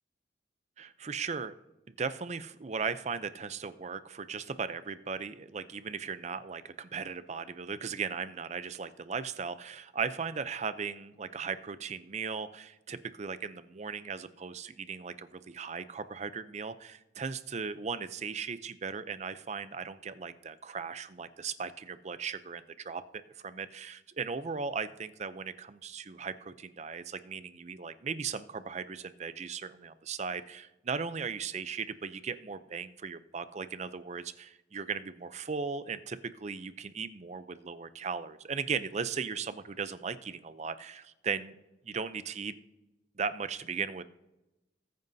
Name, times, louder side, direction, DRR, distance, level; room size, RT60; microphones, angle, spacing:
voice 1, 0.8-1.5 2.0-23.0 23.3-41.6 41.8-42.5 43.2-44.0, right 5 dB, 40° right, 13 dB, 0.5 m, -37 dB
20.0 x 9.1 x 2.7 m, 0.98 s
head